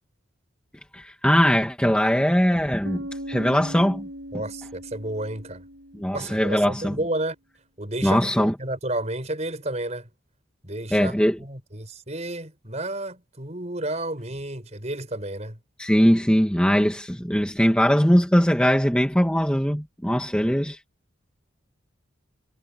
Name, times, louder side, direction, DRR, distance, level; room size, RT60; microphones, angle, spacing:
voice 1, 0.9-4.1 5.9-7.0 8.0-8.5 10.9-11.4 15.8-20.8, equal, 5° left, 2.1 m, -21 dB
Bass guitar, 2.8-6.7, equal, 70° right, 5.7 m, -39 dB
voice 2, 4.3-5.6 6.1-7.4 7.8-10.1 10.6-15.6 20.4-20.5, right 1 dB, 35° right, 5.8 m, -31 dB
head